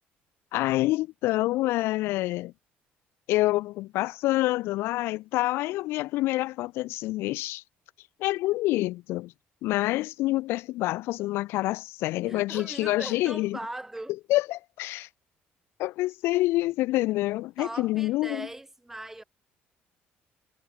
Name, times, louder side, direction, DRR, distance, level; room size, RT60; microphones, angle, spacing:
voice 1, 0.5-2.5 3.3-7.6 8.2-9.3 9.6-13.6 14.3-15.1 15.8-18.5, left 18 dB, 85° left, 1.6 m, -27 dB
voice 2, 12.3-14.1 17.6-19.2, right 1 dB, 10° right, 6.3 m, -39 dB
cardioid pair, 115°, 4 cm